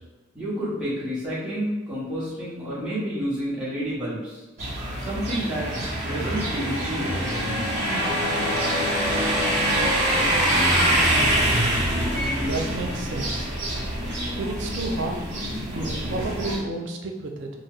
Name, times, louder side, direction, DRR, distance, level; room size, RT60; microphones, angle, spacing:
voice 1, 0.3-4.4 5.0-5.7 6.0-7.5, equal, 5° right, -11 dB, 1.0 m, -30 dB
sound 1, 4.6-16.6, right 1 dB, 35° right, 0.8 m, -25 dB
sound 2, 7.7-14.0, left 2 dB, 50° left, 1.0 m, -33 dB
voice 2, 12.4-13.5 14.4-15.2 15.7-17.5, right 2 dB, 65° right, 2 dB, 0.4 m, -31 dB
2.9 x 2.0 x 3.5 m, 1.2 s
head